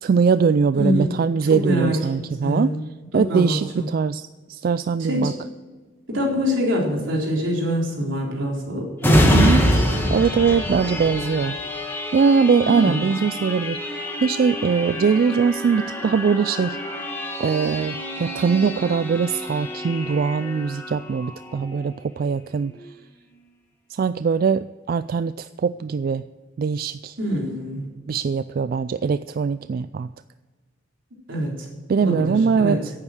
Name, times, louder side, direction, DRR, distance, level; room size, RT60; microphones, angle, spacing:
voice 1, 0.0-2.7 3.1-5.3 9.3-9.7 10.1-11.6 12.1-16.8 17.4-22.7 23.9-26.2 26.6-27.2 28.1-30.1 31.9-32.9, right 5 dB, 50° right, 14 dB, 0.3 m, -21 dB
voice 2, 1.4-2.0 2.4-2.8 3.3-3.9 5.0-5.3 6.1-10.1 12.6-13.0 27.2-27.8 31.3-31.7 32.0-32.8, equal, 80° right, -2 dB, 3.9 m, -24 dB
sound 1, 9.0-22.3 22.8-22.9, equal, 10° left, 1.7 m, -26 dB
11.0 x 8.9 x 7.8 m, 1.4 s
head